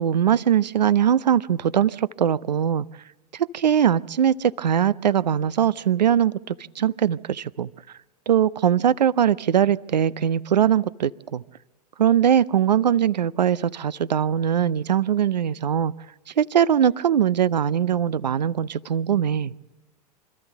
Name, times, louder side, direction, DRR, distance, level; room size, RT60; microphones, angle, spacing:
voice 1, 0.0-2.9 3.3-7.7 8.3-11.4 12.0-15.9 16.4-19.5, right 9 dB, 80° right, 19 dB, 0.6 m, -21 dB
25.5 x 14.0 x 8.1 m, 1.2 s
figure-of-eight pair, 90°, 21 cm